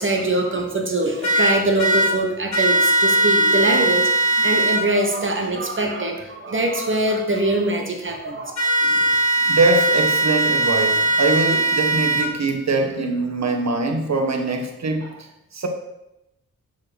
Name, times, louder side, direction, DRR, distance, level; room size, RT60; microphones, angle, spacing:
voice 1, 0.0-8.5, right 2 dB, 35° right, 2 dB, 1.2 m, -23 dB
sound 1, 1.2-2.1 2.5-4.8 8.6-12.2, right 2 dB, 55° left, 2.0 m, -19 dB
voice 2, 9.4-15.7, right 3 dB, 55° right, 4 dB, 1.3 m, -23 dB
6.2 x 4.2 x 6.0 m, 0.89 s
cardioid pair, 70°, 33 cm